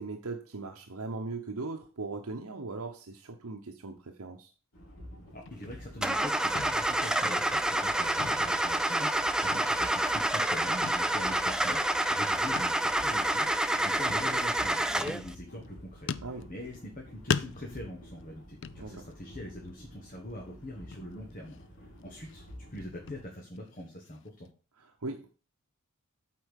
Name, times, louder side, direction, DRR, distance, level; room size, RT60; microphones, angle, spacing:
voice 1, 0.0-4.5 16.2-16.5 18.8-19.0 24.8-25.3, right 3 dB, 80° right, 4 dB, 0.9 m, -39 dB
sound 1, 4.7-23.2, equal, 75° left, 3.0 m, -50 dB
voice 2, 5.3-16.1 16.5-21.6 22.0-22.4 22.7-24.5, left 1 dB, 40° left, 1 dB, 1.5 m, -43 dB
sound 2, 5.4-6.3 6.5-7.0 7.2-7.9 8.2-9.2 9.5-10.2 10.8-11.1 11.4-11.5 12.5-12.9 13.1-13.3 14.1-14.7 15.1-15.7 16.1-16.9 17.3-19.3 19.7-20.0 20.3-20.4 20.9-21.6 22.0-24.5, left 6 dB, 55° left, 0.4 m, -39 dB
Car / Engine starting, 6.0-15.3, right 1 dB, 5° right, 0.4 m, -28 dB
8.6 x 4.5 x 6.4 m, 0.36 s
head